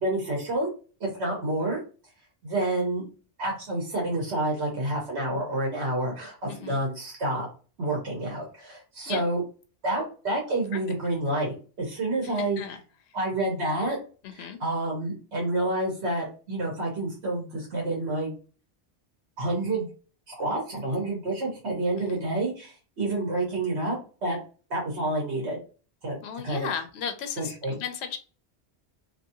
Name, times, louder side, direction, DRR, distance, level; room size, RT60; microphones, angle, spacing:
voice 1, 0.0-0.7 1.0-1.8 2.4-3.0 3.4-7.5 7.8-9.4 9.8-12.6 13.1-14.0 14.3-18.3 19.4-19.8 20.3-24.4 24.7-25.6 26.0-26.2 26.4-26.7 27.4-27.8, right 2 dB, 90° right, -1 dB, 1.3 m, -29 dB
voice 2, 6.5-6.8 9.1-9.2 12.2-12.8 14.2-14.6 22.1-22.2 26.2-28.2, left 7 dB, 80° left, 7 dB, 0.8 m, -35 dB
2.8 x 2.6 x 2.7 m, 0.36 s
omnidirectional pair, 1.1 m